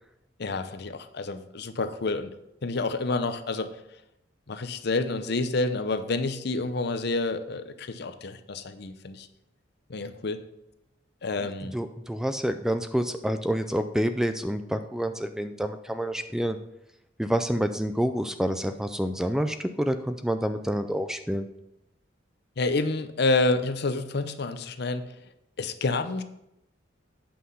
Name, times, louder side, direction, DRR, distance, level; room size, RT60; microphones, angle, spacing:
voice 1, 0.4-2.3 2.6-3.7 4.5-9.3 9.9-10.4 11.2-11.7 22.6-25.1 25.6-26.2, left 3 dB, 60° left, 10 dB, 0.7 m, -28 dB
voice 2, 11.4-16.6 17.2-21.5, equal, 5° right, 9 dB, 0.4 m, -28 dB
8.6 x 5.7 x 5.5 m, 0.83 s
head